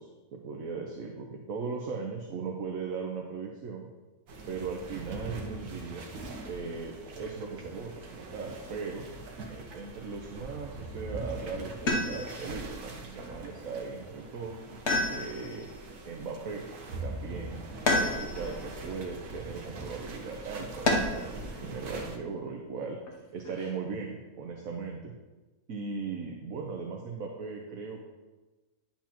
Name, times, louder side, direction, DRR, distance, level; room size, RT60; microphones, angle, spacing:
voice 1, 0.0-3.9 4.5-6.1 6.4-9.1 9.5-14.6 15.1-15.7 16.1-16.6 17.0-17.6 18.0-23.0 23.3-25.1 25.7-28.0, right 4 dB, 65° right, 1 dB, 1.2 m, -38 dB
sound 1, 4.3-22.2, right 2 dB, 85° right, 1.5 m, -42 dB
sound 2, 11.9-12.5 14.9-15.7 17.9-18.6 20.9-21.4 23.1-23.7, left 2 dB, 50° left, 1.1 m, -29 dB
10.5 x 7.2 x 2.9 m, 1.2 s
omnidirectional pair, 1.6 m